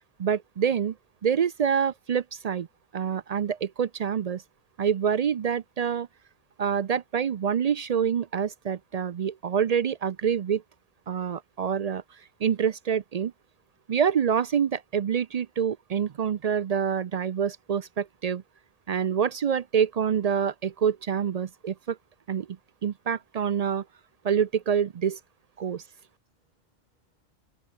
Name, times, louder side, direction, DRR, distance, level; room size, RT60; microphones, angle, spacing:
voice 1, 0.2-0.9 1.2-2.7 2.9-4.4 4.8-6.1 6.6-10.6 11.1-12.0 12.4-13.3 13.9-18.4 18.9-22.0 22.3-22.5 22.8-23.8 24.2-25.2 25.6-25.8, right 7 dB, 60° right, 0.4 m, -26 dB
voice 2, 25.7-27.3, right 1 dB, 35° right, 6.4 m, -78 dB
omnidirectional pair, 1.2 m